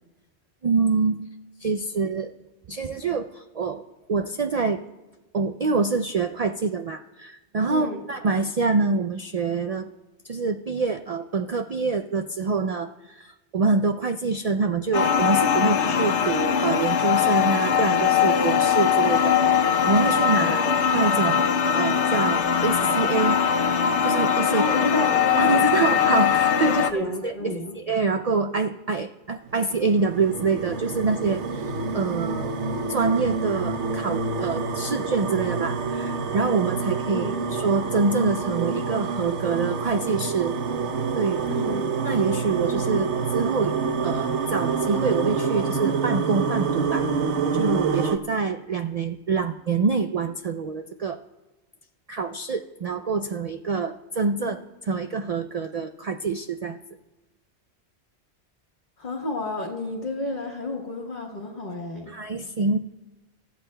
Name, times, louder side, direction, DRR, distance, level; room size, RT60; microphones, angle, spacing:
voice 1, 0.6-1.2 1.6-2.3 2.7-3.8 4.1-4.8 5.3-9.9 10.2-20.6 20.9-23.4 24.0-24.6 25.4-26.9 27.2-31.4 31.9-32.5 32.9-40.6 41.2-41.4 42.0-47.1 47.5-51.2 52.1-56.8 62.1-62.8, right 4 dB, 55° right, 6 dB, 0.4 m, -26 dB
voice 2, 7.7-8.0 20.4-20.6 24.5-25.6 26.7-27.8 37.1-37.4 41.5-41.9 54.4-54.5 59.0-62.1, left 2 dB, 40° left, -2 dB, 1.4 m, -30 dB
sound 1, 14.9-26.9, left 7 dB, 80° left, 1.1 m, -21 dB
sound 2, 29.5-48.2, right 5 dB, 85° right, 1.1 m, -27 dB
27.5 x 14.0 x 2.2 m, 1.1 s
omnidirectional pair, 1.1 m